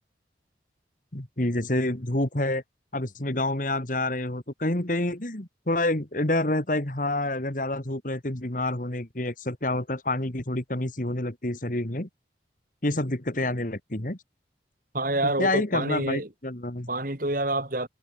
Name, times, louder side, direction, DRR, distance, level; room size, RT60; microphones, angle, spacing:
voice 1, 1.1-2.6 2.9-12.1 12.8-14.2 15.2-16.9, left 1 dB, 45° left, 2.2 m, -28 dB
voice 2, 14.9-16.3 16.9-17.9, right 2 dB, 50° right, 3.7 m, -27 dB
head